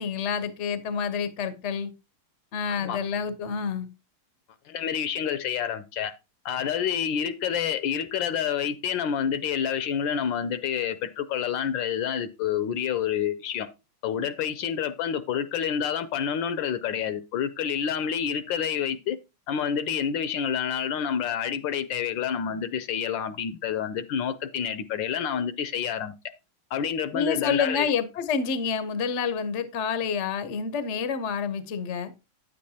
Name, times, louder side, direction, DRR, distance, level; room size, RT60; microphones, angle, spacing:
voice 1, 0.0-1.9 2.5-3.9 27.1-32.1, left 6 dB, 60° left, 0.7 m, -28 dB
voice 2, 2.7-3.0 4.7-6.1 6.4-13.7 14.0-19.2 19.5-26.1 26.7-27.9, left 8 dB, 75° left, 1.2 m, -28 dB
9.2 x 8.4 x 2.8 m
omnidirectional pair, 2.3 m